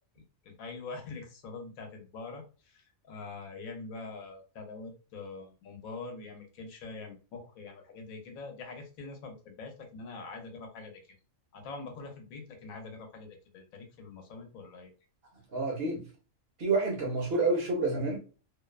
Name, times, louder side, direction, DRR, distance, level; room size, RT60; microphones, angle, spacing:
voice 1, 0.4-11.0 11.5-14.9, left 3 dB, 90° left, 1.2 m, -44 dB
voice 2, 15.5-16.1 16.6-18.2, right 3 dB, 55° right, 0.8 m, -28 dB
2.6 x 2.1 x 2.3 m
omnidirectional pair, 1.4 m